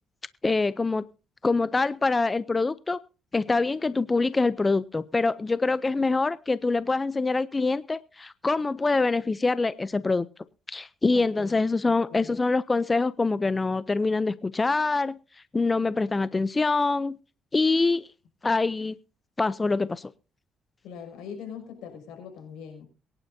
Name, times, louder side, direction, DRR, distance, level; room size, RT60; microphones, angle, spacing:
voice 1, 0.4-1.0 1.4-3.0 3.3-10.3 10.7-15.2 15.5-17.2 17.5-18.1 18.4-18.9 19.4-20.1, left 3 dB, 25° left, 16 dB, 0.5 m, -25 dB
voice 2, 11.1-11.6 11.8-12.3 20.8-22.8, left 7 dB, 90° left, 3 dB, 6.0 m, -42 dB
23.0 x 10.5 x 2.7 m, 0.34 s
cardioid pair, 90°, 0 cm